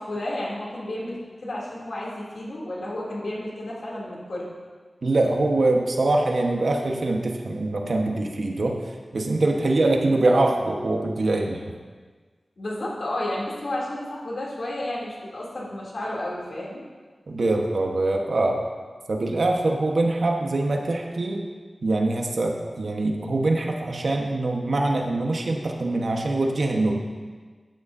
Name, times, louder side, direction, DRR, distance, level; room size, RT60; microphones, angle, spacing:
voice 1, 0.0-4.5 9.7-9.9 12.6-16.8, left 1 dB, 70° left, -5 dB, 2.8 m, -32 dB
voice 2, 5.0-8.8 9.1-11.6 17.3-18.6 19.1-21.5 21.8-27.0, right 2 dB, 70° right, 1 dB, 1.2 m, -23 dB
13.0 x 9.9 x 2.7 m, 1.5 s
wide cardioid pair, 95°, 0 cm